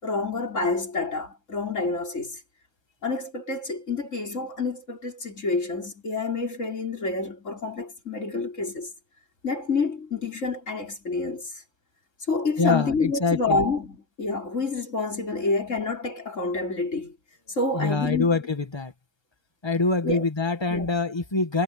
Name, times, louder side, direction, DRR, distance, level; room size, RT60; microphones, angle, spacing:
voice 1, 0.0-2.4 3.0-8.9 9.4-11.5 12.3-17.1 17.5-18.4 20.0-20.2 20.7-20.9, left 3 dB, 90° left, 5.4 m, -28 dB
voice 2, 12.6-13.6 17.7-18.9 19.6-21.6, left 3 dB, 20° left, 1.7 m, -25 dB
omnidirectional pair, 1.3 m